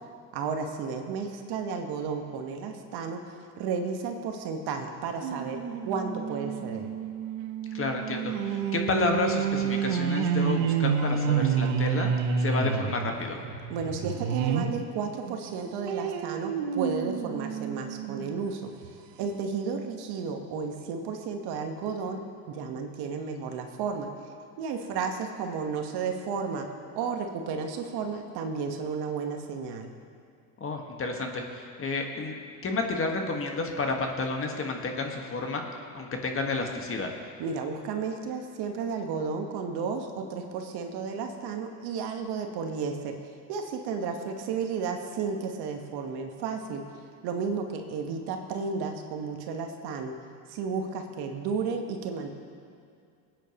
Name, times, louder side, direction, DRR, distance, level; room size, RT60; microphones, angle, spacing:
voice 1, 0.3-3.2 3.6-5.6 5.8-6.9 13.7-18.7 19.2-22.2 22.5-24.1 24.6-26.6 26.9-29.9 37.4-43.2 43.5-46.8 47.2-50.1 50.5-52.3, right 5 dB, 60° right, 4 dB, 1.4 m, -33 dB
sound 1, 5.2-14.8 15.2-18.3 18.8-18.9 19.2-19.3, right 7 dB, 75° right, 1.0 m, -29 dB
voice 2, 7.7-12.1 12.4-13.4 30.6-32.3 32.6-35.6 35.9-37.1, left 3 dB, 30° left, 2 dB, 1.6 m, -30 dB
20.5 x 9.2 x 3.0 m, 2.4 s
supercardioid pair, 95°, 44 cm